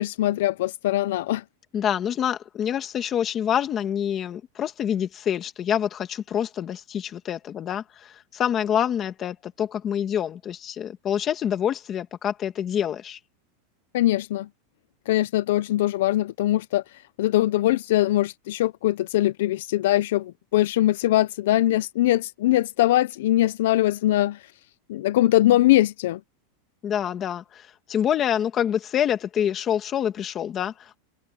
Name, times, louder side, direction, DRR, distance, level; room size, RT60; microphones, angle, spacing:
voice 1, 0.0-1.4 13.9-14.5 15.1-24.5 24.9-26.2, left 15 dB, 65° left, 0.5 m, -22 dB
voice 2, 1.7-13.2 26.8-31.0, left 9 dB, 20° left, 1.7 m, -26 dB
supercardioid pair, 170°, 0 cm